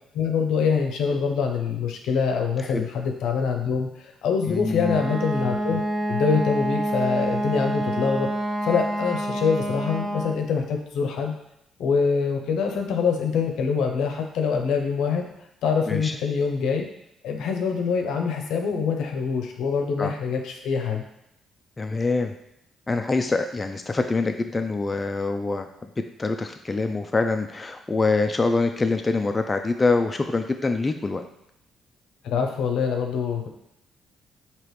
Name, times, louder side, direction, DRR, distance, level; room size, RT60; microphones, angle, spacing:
voice 1, 0.1-5.8 6.1-8.3 8.6-11.3 11.8-15.3 15.6-16.9 17.2-21.0 32.2-33.5, left 5 dB, 85° left, 3 dB, 0.6 m, -25 dB
voice 2, 4.5-5.0 15.9-16.1 20.0-20.1 21.8-22.3 22.9-25.7 26.2-31.2, left 3 dB, 25° left, 5 dB, 0.3 m, -25 dB
Wind instrument woodwind instrument, 4.7-10.4, right 1 dB, 30° right, 1.1 m, -27 dB
4.8 x 2.9 x 3.1 m, 0.81 s
cardioid pair, 90°, 0 cm